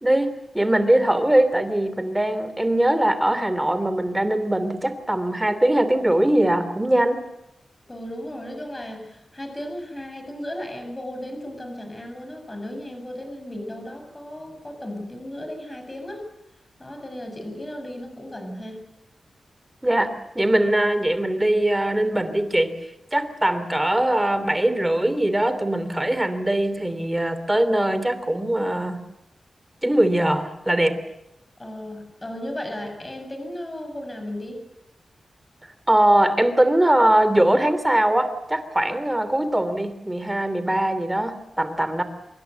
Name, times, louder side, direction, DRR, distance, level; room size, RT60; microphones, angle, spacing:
voice 1, 0.0-7.2 19.8-22.8 23.1-29.0 29.8-31.0 35.9-42.0, right 1 dB, 10° right, 11 dB, 3.0 m, -21 dB
voice 2, 7.8-16.3 16.8-18.8 31.6-34.6, left 1 dB, 20° left, 5 dB, 7.1 m, -35 dB
26.0 x 23.0 x 8.1 m, 0.85 s
wide cardioid pair, 130°, 0 cm